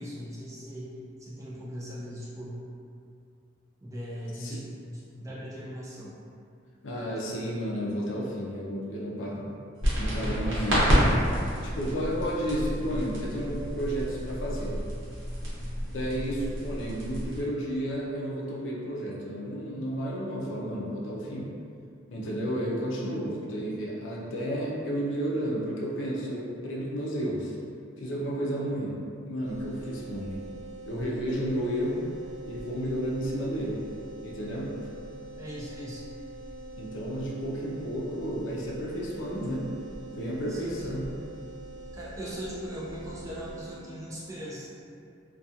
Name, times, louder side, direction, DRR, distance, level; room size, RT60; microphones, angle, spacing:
voice 1, 0.0-2.6 3.8-6.2 10.2-10.9 35.4-36.0 40.5-41.0 41.9-44.7, equal, 15° right, -8 dB, 0.4 m, -39 dB
voice 2, 6.8-9.5 9.9-14.8 15.9-21.5 22.1-27.6 28.0-29.0 29.2-30.4 30.9-32.1 32.5-33.8 34.2-34.9 36.8-39.7 40.2-41.1, equal, 75° left, -4 dB, 0.5 m, -32 dB
sound 1, 9.8-17.4, equal, 75° right, 0.8 m, -29 dB
sound 2, 29.4-43.8, right 2 dB, 40° right, 0.8 m, -44 dB
2.3 x 2.2 x 2.7 m, 2.4 s
head